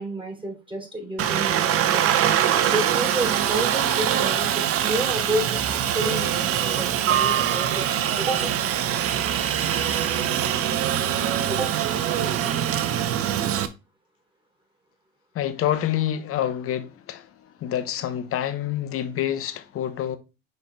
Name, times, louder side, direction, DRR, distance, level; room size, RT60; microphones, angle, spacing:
voice 1, 0.0-2.1 2.7-8.5 11.5-11.8, right 1 dB, 15° right, 3.5 m, -30 dB
Aircraft, 1.2-13.7, right 10 dB, 50° right, 0.9 m, -23 dB
voice 2, 15.3-17.3 17.6-20.2, left 11 dB, 45° left, 1.1 m, -27 dB
6.6 x 4.2 x 3.5 m
hypercardioid pair, 70°, 30 cm